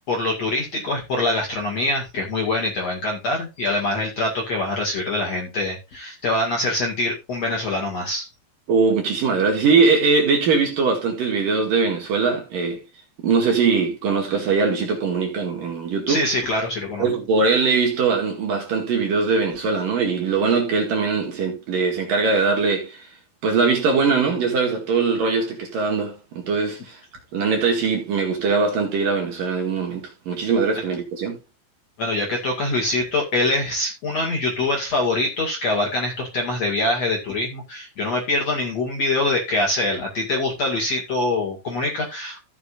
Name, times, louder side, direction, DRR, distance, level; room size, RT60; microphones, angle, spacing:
voice 1, 0.1-8.3 16.1-17.1 32.0-42.4, left 2 dB, 45° left, 2.6 m, -24 dB
voice 2, 8.7-12.8 13.2-16.2 17.0-23.1 23.4-27.0 27.3-31.4, right 4 dB, 55° right, 3.0 m, -21 dB
15.5 x 7.0 x 2.6 m
omnidirectional pair, 5.6 m